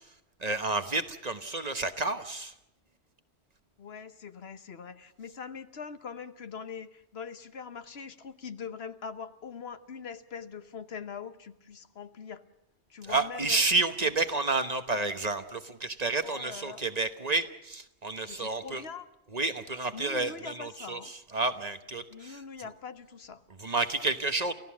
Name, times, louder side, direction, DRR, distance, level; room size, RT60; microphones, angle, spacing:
voice 1, 0.4-2.5 13.0-18.8 19.3-22.4 23.6-24.5, right 3 dB, 40° right, 10 dB, 1.1 m, -30 dB
voice 2, 3.8-12.4 12.9-13.6 14.0-14.1 16.2-16.9 18.3-19.1 19.9-21.1 22.1-23.4, left 6 dB, 65° left, 11 dB, 1.3 m, -42 dB
30.0 x 15.0 x 7.4 m, 0.83 s
omnidirectional pair, 1.1 m